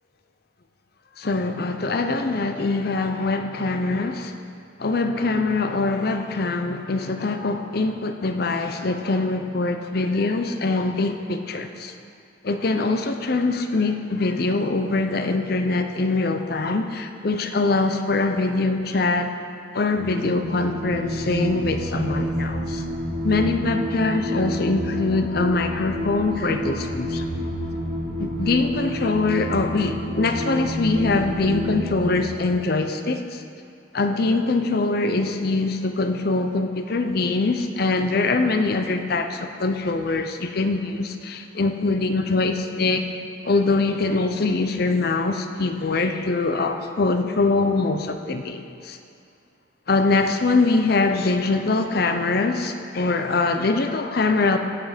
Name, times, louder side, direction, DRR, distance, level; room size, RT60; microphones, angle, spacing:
voice 1, 1.2-4.3 4.8-11.9 12.4-19.3 19.7-22.8 23.2-27.3 28.2-33.4 33.9-43.1 43.4-49.0 49.9-54.6, left 3 dB, 55° left, 7 dB, 0.6 m, -23 dB
sound 1, 20.0-32.1, equal, 65° right, 1.5 m, -29 dB
16.5 x 6.0 x 5.1 m, 2.4 s
head